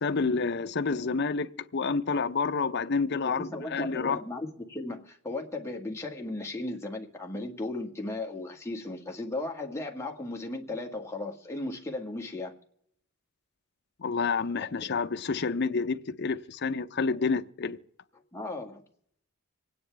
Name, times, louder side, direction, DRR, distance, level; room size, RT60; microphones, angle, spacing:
voice 1, 0.0-4.2 14.0-17.8, left 4 dB, 55° left, 0.6 m, -29 dB
voice 2, 3.2-12.5 14.8-14.9 18.3-18.8, left 2 dB, 15° left, 1.5 m, -36 dB
26.0 x 9.6 x 3.4 m
head